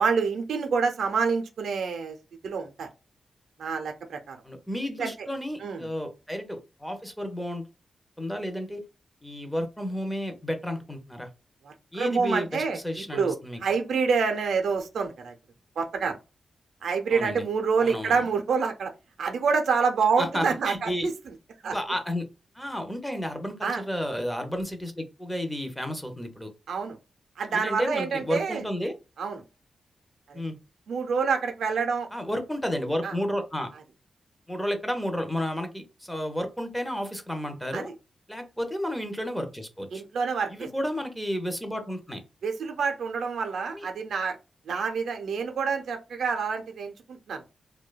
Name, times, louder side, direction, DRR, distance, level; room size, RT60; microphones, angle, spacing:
voice 1, 0.0-2.2 2.4-2.9 3.6-4.4 5.0-5.1 5.6-5.9 11.6-15.3 15.8-16.2 16.8-18.9 19.2-21.1 21.6-21.7 23.6-23.8 26.7-27.0 27.4-28.6 29.2-29.4 30.3-30.4 30.9-32.1 33.0-33.1 37.7-37.9 39.9-40.7 42.4-44.4 44.7-47.5, right 5 dB, 85° right, 5 dB, 0.4 m, -27 dB
voice 2, 4.4-7.6 8.2-8.8 9.2-11.3 11.9-13.6 17.1-17.4 17.8-18.2 20.2-21.1 21.6-22.3 22.5-26.5 27.5-28.9 30.3-30.6 32.1-33.7 34.5-37.9 38.3-40.0 40.5-42.2 43.7-43.9, equal, 5° left, 6 dB, 0.5 m, -32 dB
2.6 x 2.1 x 2.2 m, 0.28 s
cardioid pair, 90°, 0 cm